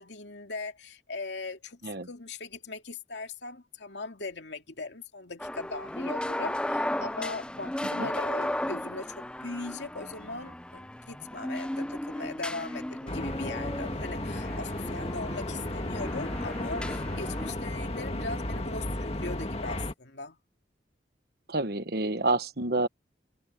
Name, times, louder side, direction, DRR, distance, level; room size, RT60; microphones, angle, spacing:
voice 1, 0.0-1.8 2.1-20.4, left 3 dB, 70° left, 2.5 m, -39 dB
sound 1, 5.4-17.5, left 1 dB, 5° left, 0.4 m, -35 dB
sound 2, 13.1-19.9, left 1 dB, 35° left, 1.9 m, -34 dB
voice 2, 21.5-22.9, right 2 dB, 55° right, 1.2 m, -28 dB
head